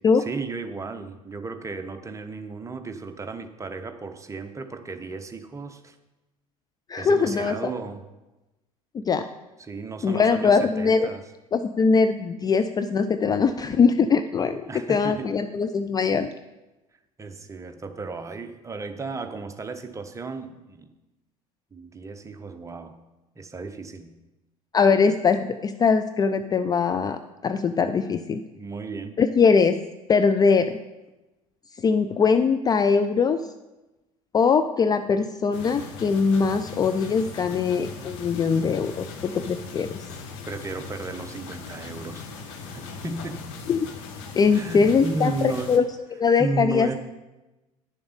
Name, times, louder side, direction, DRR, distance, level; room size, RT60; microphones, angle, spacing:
voice 1, 0.1-6.0 7.0-8.0 9.6-11.2 14.7-15.3 17.2-20.9 21.7-23.0 23.4-24.1 28.5-29.2 40.4-43.4 44.5-45.7 46.4-46.9, right 3 dB, 15° right, 7 dB, 0.8 m, -34 dB
voice 2, 6.9-7.7 8.9-9.3 10.0-11.1 11.5-16.3 24.7-27.2 27.4-28.4 29.2-29.8 30.1-30.8 31.8-33.4 34.3-40.0 43.7-43.9 44.4-46.9, left 5 dB, 20° left, 9 dB, 0.4 m, -21 dB
sound 1, 35.5-45.8, left 5 dB, 55° left, 1.2 m, -39 dB
9.7 x 7.0 x 5.1 m, 1.0 s
figure-of-eight pair, 65°, 18 cm